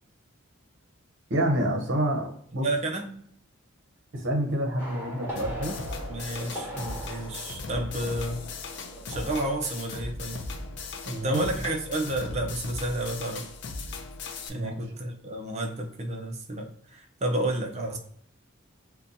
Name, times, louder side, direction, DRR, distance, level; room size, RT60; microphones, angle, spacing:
voice 1, 1.3-2.7 4.1-5.8 11.0-11.4 14.5-14.8, right 1 dB, 65° right, 2 dB, 0.8 m, -28 dB
voice 2, 2.6-3.1 6.1-8.4 9.1-10.5 11.2-13.5 14.5-18.0, right 1 dB, 35° right, 2 dB, 0.5 m, -31 dB
sound 1, 4.8-11.2 11.5-11.8, equal, 10° right, 1.3 m, -41 dB
sound 2, 5.4-14.5, left 3 dB, 55° left, 0.4 m, -38 dB
2.7 x 2.2 x 3.8 m, 0.64 s
head